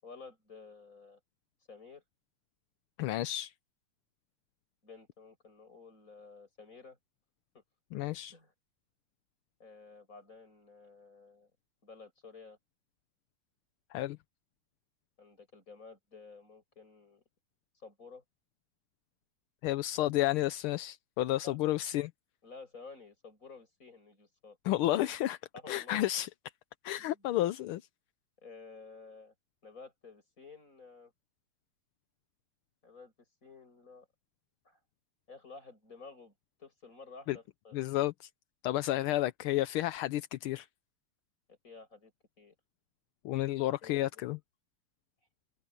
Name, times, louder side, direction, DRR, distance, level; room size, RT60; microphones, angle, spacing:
voice 1, 0.0-1.2 1.7-2.0 4.8-7.0 7.5-7.6 8.3-8.5 9.6-11.5 11.8-12.6 15.2-17.2 17.8-18.2 21.4-21.6 22.4-24.6 25.5-26.0 26.9-27.3 28.4-29.3 29.6-31.1 32.8-33.1 33.4-34.1 34.6-34.8 35.3-36.3 36.6-37.8 41.5-42.1 42.4-42.6 43.8-44.2, left 4 dB, 35° left, 7.7 m, -52 dB
voice 2, 3.0-3.5 7.9-8.3 13.9-14.2 19.6-22.1 24.6-25.4 25.7-26.3 26.8-27.8 37.3-37.4 37.7-38.3 38.6-40.7 43.2-44.4, left 15 dB, 80° left, 1.5 m, -31 dB
open air
omnidirectional pair, 2.4 m